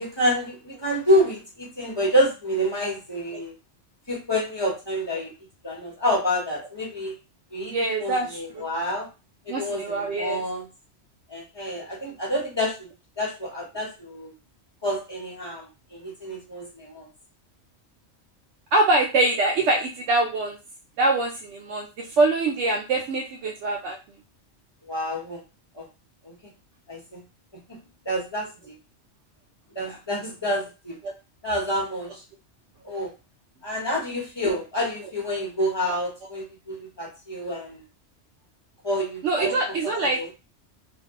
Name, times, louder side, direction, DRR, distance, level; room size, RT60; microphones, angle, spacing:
voice 1, 0.0-3.5 4.1-5.3 5.6-7.1 7.5-7.7 8.0-9.1 9.5-10.7 11.3-12.7 13.2-14.3 14.8-17.0 24.9-25.4 25.7-25.8 26.2-26.3 26.9-27.2 28.1-28.7 29.7-31.0 31.4-32.1 32.8-33.1 33.6-37.8 38.8-39.6 40.2-40.3, equal, 25° left, -3 dB, 0.9 m, -28 dB
voice 2, 7.7-8.7 9.5-10.4 18.7-20.6 21.0-24.0 29.8-30.0 34.4-34.6 39.2-40.2, right 2 dB, 85° right, 0 dB, 0.9 m, -24 dB
2.6 x 2.2 x 3.5 m, 0.29 s
omnidirectional pair, 1.2 m